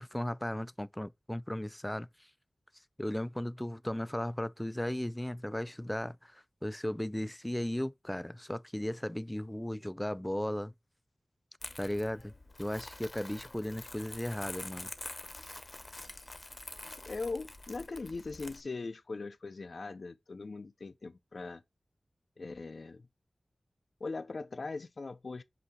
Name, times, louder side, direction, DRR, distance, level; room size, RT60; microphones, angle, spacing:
voice 1, 0.0-2.1 3.0-10.7 11.8-12.3 12.6-14.9, left 1 dB, 10° left, 0.3 m, -36 dB
Crumpling crinkling, 11.6-18.6, left 2 dB, 35° left, 0.8 m, -46 dB
voice 2, 17.1-21.6 22.4-23.1 24.0-25.4, left 3 dB, 65° left, 0.5 m, -40 dB
8.0 x 2.8 x 4.9 m
wide cardioid pair, 85°, 0 cm